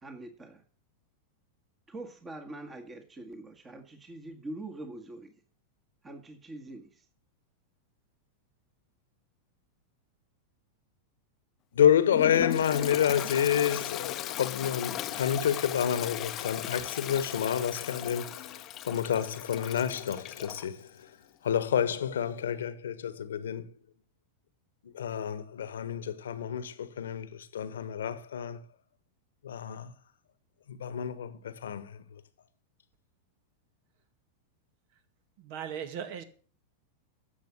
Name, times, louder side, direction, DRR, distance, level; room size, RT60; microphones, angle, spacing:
voice 1, 0.0-0.6 1.9-5.3 6.0-7.1, right 2 dB, 20° right, 1.8 m, -44 dB
voice 2, 11.7-18.6 18.8-20.9 21.4-23.7 24.8-28.6 29.4-29.9 30.7-32.0, left 9 dB, 85° left, 1.2 m, -29 dB
Toilet flush, 12.1-20.7, left 13 dB, 40° left, 0.7 m, -37 dB
voice 3, 35.4-36.2, right 8 dB, 60° right, 2.1 m, -38 dB
11.0 x 7.4 x 8.2 m
hypercardioid pair, 115°, 0 cm